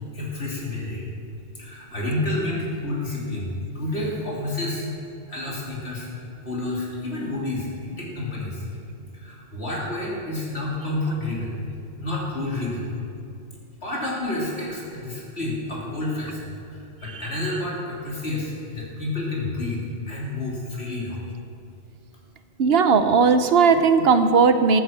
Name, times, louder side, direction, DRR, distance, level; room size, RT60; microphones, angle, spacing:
voice 1, 0.1-1.0 1.6-4.8 5.3-8.6 9.2-11.6 12.0-12.9 13.8-19.8 20.1-21.2, left 2 dB, 60° left, -5 dB, 3.3 m, -29 dB
voice 2, 22.6-24.8, right 5 dB, 55° right, 10 dB, 1.0 m, -17 dB
13.5 x 9.4 x 7.3 m, 2.6 s
omnidirectional pair, 1.3 m